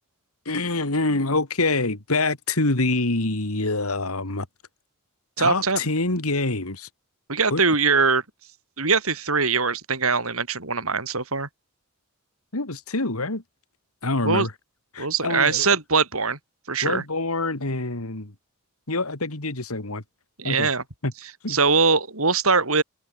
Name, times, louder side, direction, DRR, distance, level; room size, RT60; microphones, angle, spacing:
voice 1, 0.5-4.5 5.4-6.9 7.5-7.6 12.5-13.4 14.0-14.5 14.9-15.7 16.8-18.3 18.9-20.0 20.4-20.7 21.0-21.1 21.4-21.6, left 2 dB, 85° left, 2.9 m, -25 dB
voice 2, 5.4-5.8 7.3-8.2 8.8-11.5 14.2-14.5 15.0-16.4 16.7-17.0 20.4-20.8 21.5-22.8, right 4 dB, 75° right, 6.1 m, -22 dB
head